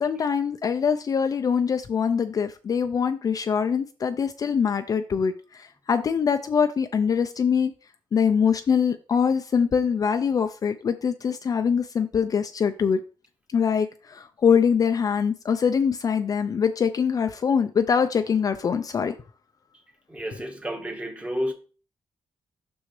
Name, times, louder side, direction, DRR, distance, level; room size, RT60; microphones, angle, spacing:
voice 1, 0.0-7.7 8.1-13.0 13.5-19.2, left 6 dB, 40° left, 0.4 m, -23 dB
voice 2, 20.1-21.5, equal, 15° right, 1.2 m, -31 dB
6.4 x 6.2 x 3.1 m
wide cardioid pair, 155°, 10 cm